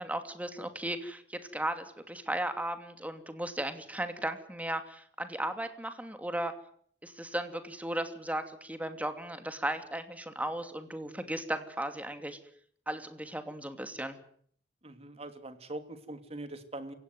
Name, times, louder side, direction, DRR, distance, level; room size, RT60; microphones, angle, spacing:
voice 1, 0.0-6.5 7.0-12.4 12.9-14.2, right 1 dB, 10° right, 8 dB, 2.8 m, -36 dB
voice 2, 14.8-16.9, right 2 dB, 35° right, 9 dB, 3.0 m, -42 dB
28.0 x 17.0 x 9.5 m, 0.62 s
head